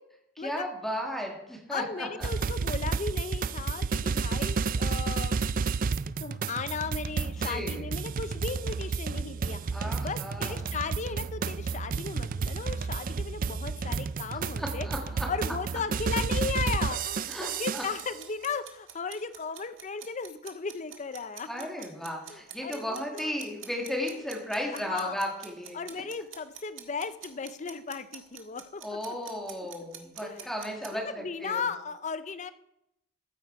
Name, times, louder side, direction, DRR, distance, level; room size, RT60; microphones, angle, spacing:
voice 1, 0.4-2.3 7.4-7.9 9.7-10.6 14.6-15.3 17.3-17.8 21.5-25.8 28.8-31.6, equal, ahead, 0 dB, 2.2 m, -35 dB
voice 2, 1.7-5.4 6.2-14.9 15.3-21.7 22.3-23.3 24.7-25.2 25.7-28.8 29.1-29.2 30.2-30.5 30.9-32.5, left 5 dB, 35° left, 13 dB, 0.5 m, -36 dB
sound 1, 2.2-18.1, right 5 dB, 40° right, 0.4 m, -31 dB
sound 2, 17.3-30.9, right 10 dB, 70° right, 1.7 m, -46 dB
14.0 x 9.1 x 4.6 m, 0.82 s
head